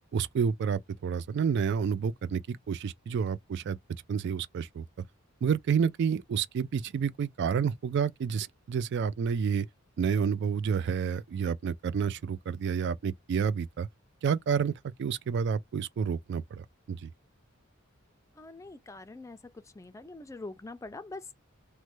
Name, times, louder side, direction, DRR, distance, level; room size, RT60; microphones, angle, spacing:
voice 1, 0.1-3.8 4.1-4.8 5.4-9.7 10.0-13.9 14.2-14.7 15.0-17.1, right 6 dB, 60° right, 0.3 m, -29 dB
voice 2, 18.4-19.4 19.7-21.3, left 2 dB, 15° left, 0.4 m, -43 dB
3.1 x 2.1 x 3.1 m
head